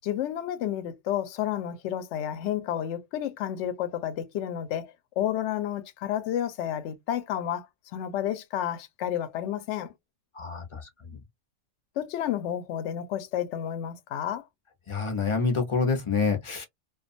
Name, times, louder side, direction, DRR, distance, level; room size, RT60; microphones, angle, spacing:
voice 1, 0.0-9.9 12.0-14.4, left 10 dB, 70° left, 0.8 m, -31 dB
voice 2, 10.4-11.2 14.9-16.6, left 4 dB, 40° left, 0.5 m, -27 dB
2.4 x 2.2 x 2.5 m
omnidirectional pair, 1.4 m